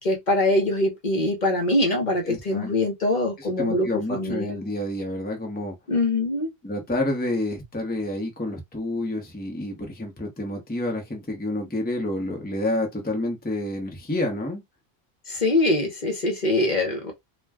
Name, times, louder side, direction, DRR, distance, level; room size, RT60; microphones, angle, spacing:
voice 1, 0.0-4.6 5.9-6.5 15.3-17.1, left 1 dB, 45° left, 1.0 m, -23 dB
voice 2, 2.2-2.7 3.4-5.8 6.6-14.6, left 1 dB, 10° left, 0.7 m, -29 dB
2.5 x 2.2 x 3.4 m
omnidirectional pair, 1.1 m